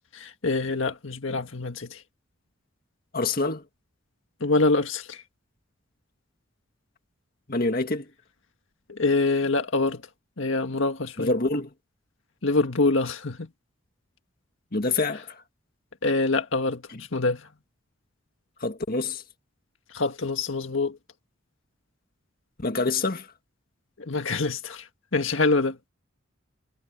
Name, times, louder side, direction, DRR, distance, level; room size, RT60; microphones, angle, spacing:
voice 1, 0.1-2.0 4.4-5.2 8.9-10.0 10.4-11.3 12.4-13.5 16.0-16.8 17.1-17.4 19.9-21.0 24.0-24.9 25.1-25.8, left 3 dB, 70° left, 1.7 m, -25 dB
voice 2, 3.1-3.6 7.5-8.0 11.2-11.7 14.7-15.4 16.9-17.0 18.6-19.2 22.6-23.3, left 3 dB, 45° left, 1.9 m, -26 dB
head